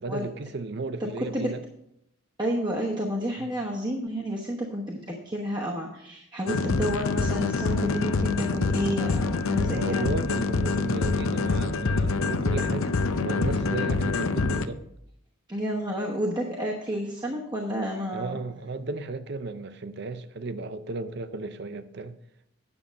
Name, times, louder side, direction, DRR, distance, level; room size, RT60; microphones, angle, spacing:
voice 1, 0.0-1.6 3.4-3.5 6.6-6.8 9.6-14.8 18.1-22.2, right 3 dB, 50° right, 0.6 m, -34 dB
voice 2, 1.0-1.5 2.4-10.1 15.5-18.4, equal, 20° right, 1.0 m, -30 dB
sound 1, 6.5-14.6, left 4 dB, 75° left, 0.6 m, -26 dB
9.6 x 6.9 x 5.2 m
head